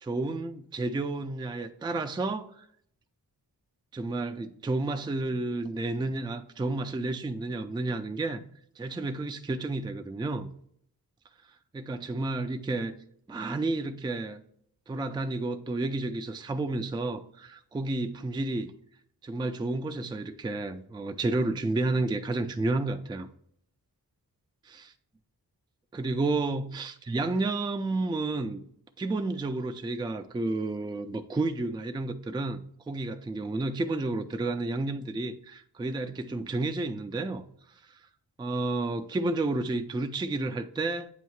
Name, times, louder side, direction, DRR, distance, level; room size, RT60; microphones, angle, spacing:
voice 1, 0.0-2.7 3.9-8.4 8.8-10.5 11.7-13.0 13.3-14.4 14.9-18.7 19.2-23.3 24.7-24.8 25.9-28.6 29.0-37.4 37.9-38.0 38.4-41.1, right 2 dB, 10° right, 0.3 m, -31 dB
8.1 x 2.8 x 4.6 m
wide cardioid pair, 65°, 41 cm